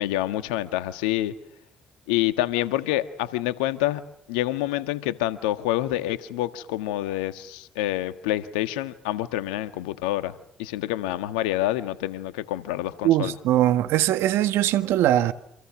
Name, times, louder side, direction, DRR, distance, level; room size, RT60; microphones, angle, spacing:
voice 1, 0.0-1.3 2.1-4.0 4.3-10.3 10.6-13.3, left 15 dB, 85° left, 1.5 m, -27 dB
voice 2, 13.0-15.3, right 12 dB, 75° right, 1.6 m, -21 dB
28.5 x 27.0 x 6.2 m
hypercardioid pair, 50°, 4 cm